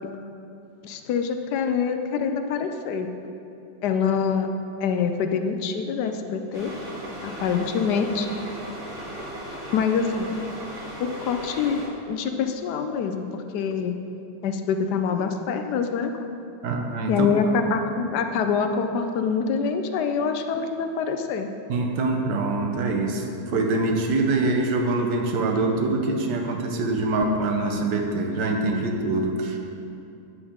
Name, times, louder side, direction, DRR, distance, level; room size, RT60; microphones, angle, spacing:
voice 1, 0.8-3.1 3.8-4.5 4.8-6.7 7.2-8.4 9.7-10.3 11.0-11.8 12.1-13.9 14.4-16.2 17.1-21.5, left 6 dB, 70° left, 6 dB, 1.1 m, -25 dB
sound 1, 6.5-11.9, right 1 dB, 45° right, 1.8 m, -37 dB
voice 2, 16.6-17.3 21.7-29.6, right 2 dB, 70° right, 2 dB, 1.4 m, -24 dB
9.3 x 7.0 x 3.6 m, 2.7 s
omnidirectional pair, 2.0 m